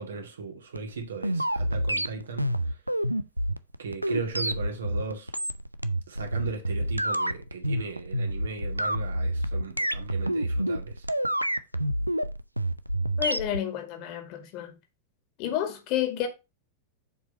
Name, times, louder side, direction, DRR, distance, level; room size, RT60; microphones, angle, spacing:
voice 1, 0.0-2.8 3.8-5.3 6.1-11.0, right 5 dB, 70° right, 2.0 m, -37 dB
sound 1, 0.7-13.6, right 1 dB, 90° right, 0.5 m, -28 dB
voice 2, 13.2-14.8 15.4-16.3, left 11 dB, 45° left, 1.9 m, -30 dB
7.1 x 4.9 x 5.2 m
figure-of-eight pair, 90°, 0 cm